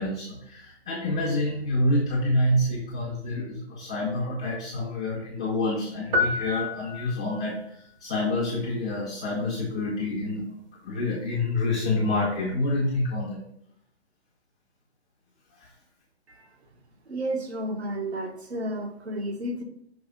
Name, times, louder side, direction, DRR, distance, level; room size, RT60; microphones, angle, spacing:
voice 1, 0.0-10.5 10.8-13.4 15.6-15.7, left 1 dB, 5° left, -7 dB, 0.4 m, -27 dB
sound 1, 6.1-7.6, left 3 dB, 40° right, 0.9 m, -28 dB
voice 2, 17.1-19.6, right 1 dB, 75° right, 4 dB, 1.4 m, -32 dB
6.1 x 3.2 x 5.2 m, 0.73 s
hypercardioid pair, 150°, 33 cm